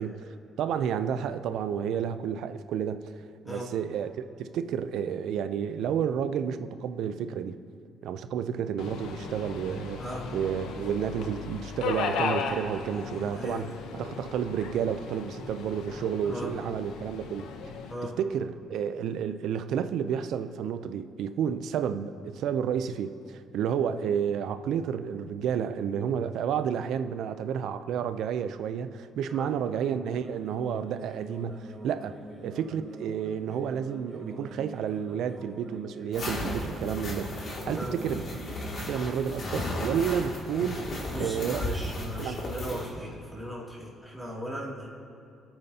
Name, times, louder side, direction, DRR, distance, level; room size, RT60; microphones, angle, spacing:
voice 1, 0.0-3.1 3.5-7.6 8.0-10.0 10.3-17.5 18.0-32.2 32.4-38.4 38.9-40.8 41.2-41.8 42.2-42.4 42.7-42.8, right 8 dB, 75° right, 11 dB, 0.5 m, -31 dB
Subway metro underground, 8.8-17.9, left 5 dB, 90° left, 0.8 m, -36 dB
voice 2, 10.0-10.3 13.3-13.7 16.2-16.5 17.9-18.2 29.3-29.5 37.8-37.9 41.1-44.9, equal, 10° left, -6 dB, 2.6 m, -38 dB
sound 1, 30.1-38.8, right 2 dB, 35° right, 3.4 m, -45 dB
sound 2, 36.1-42.9, left 1 dB, 50° left, 2.3 m, -34 dB
24.0 x 8.8 x 2.8 m, 2.4 s
cardioid pair, 110°, 0 cm